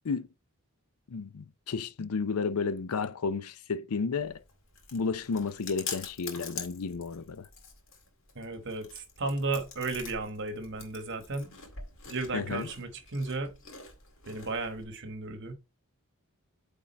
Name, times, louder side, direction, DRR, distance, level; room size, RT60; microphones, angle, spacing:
voice 1, 1.1-4.4 4.9-7.5 12.3-12.7, left 5 dB, 85° left, 0.5 m, -32 dB
Chewing mastication, 4.2-14.8, left 5 dB, 60° left, 2.0 m, -45 dB
voice 2, 8.3-11.5 12.1-13.5 14.3-15.5, right 3 dB, 55° right, 1.2 m, -34 dB
8.6 x 3.7 x 4.1 m
head